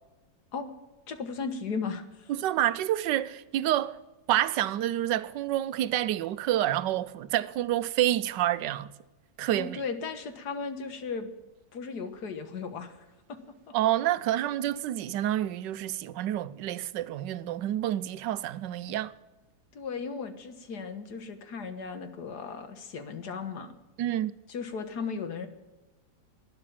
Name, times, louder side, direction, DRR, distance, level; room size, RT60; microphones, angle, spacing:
voice 1, 1.1-2.3 9.6-11.3 11.7-13.4 13.7-13.8 19.7-23.7 24.5-25.5, left 5 dB, 70° left, 1.9 m, -36 dB
voice 2, 2.3-4.0 4.3-8.9 9.4-9.8 13.7-19.1 24.0-24.3, right 13 dB, 90° right, 1.3 m, -28 dB
12.0 x 10.5 x 8.6 m
omnidirectional pair, 1.8 m